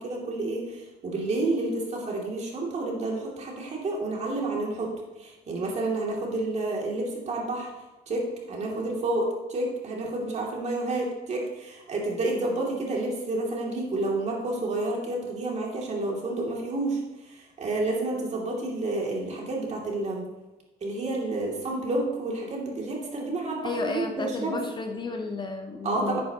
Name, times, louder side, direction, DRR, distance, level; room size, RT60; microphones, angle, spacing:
voice 1, 0.0-4.9 5.2-7.7 8.1-17.0 17.3-20.3 20.8-24.6 25.8-26.2, right 2 dB, 40° right, -2 dB, 2.8 m, -30 dB
voice 2, 23.6-26.2, left 3 dB, 25° left, 4 dB, 0.9 m, -32 dB
10.0 x 8.9 x 3.0 m, 1.1 s
cardioid pair, 110°, 17 cm